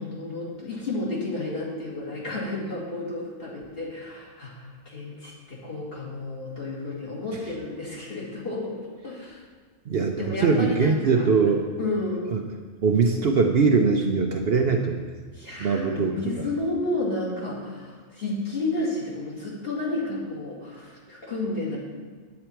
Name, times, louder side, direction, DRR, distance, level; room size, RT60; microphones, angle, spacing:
voice 1, 0.0-8.8 9.0-9.4 10.2-11.3 11.8-12.3 15.3-21.8, left 2 dB, 45° left, -5 dB, 2.6 m, -31 dB
voice 2, 9.9-11.7 12.3-12.4 12.8-15.0 15.6-16.5, right 4 dB, 55° right, 3 dB, 0.8 m, -22 dB
9.7 x 8.5 x 4.5 m, 1.5 s
omnidirectional pair, 1.4 m